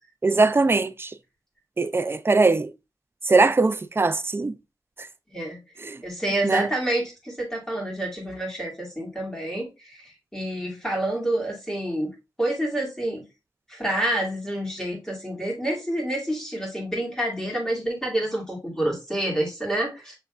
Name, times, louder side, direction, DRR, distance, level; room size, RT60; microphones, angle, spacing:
voice 1, 0.2-1.2 1.8-2.7 3.2-4.5 5.0-5.1 5.8-6.0 6.4-6.7, right 3 dB, 30° right, 0.4 m, -21 dB
voice 2, 5.3-5.6 6.0-13.2 13.7-20.1, right 1 dB, 5° left, 2.3 m, -28 dB
6.5 x 3.4 x 2.4 m
wide cardioid pair, 70°, 8 cm